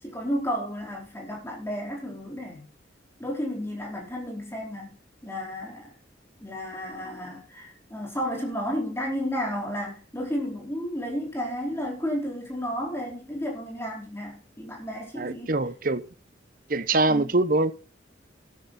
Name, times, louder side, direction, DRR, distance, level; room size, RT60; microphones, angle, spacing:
voice 1, 0.0-2.6 3.2-5.9 6.4-15.5 17.1-17.2, equal, 15° left, 4.6 m, -32 dB
voice 2, 15.2-16.0 16.7-17.7, right 2 dB, 50° right, 0.9 m, -23 dB
12.5 x 12.0 x 4.3 m
head